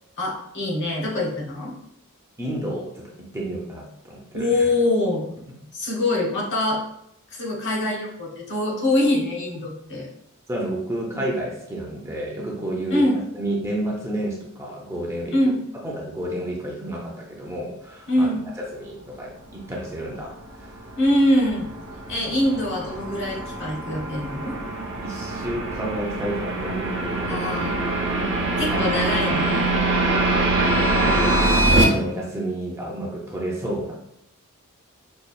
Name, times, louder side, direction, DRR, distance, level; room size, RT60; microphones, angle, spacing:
voice 1, 0.2-1.7 4.3-5.3 5.7-6.8 7.3-10.1 12.9-13.2 15.3-15.6 18.1-18.4 21.0-21.7 22.1-24.6 27.3-27.8 28.6-29.7, left 1 dB, 55° left, -2 dB, 1.0 m, -23 dB
voice 2, 2.4-4.7 10.5-15.3 15.8-18.3 18.6-20.9 25.0-27.5 28.2-28.9 29.1-29.3 31.1-31.4 31.7-34.0, right 1 dB, 15° right, -2 dB, 0.5 m, -31 dB
sound 1, 20.4-31.8, right 2 dB, 55° right, 0.7 m, -24 dB
5.3 x 2.3 x 2.3 m, 0.77 s
head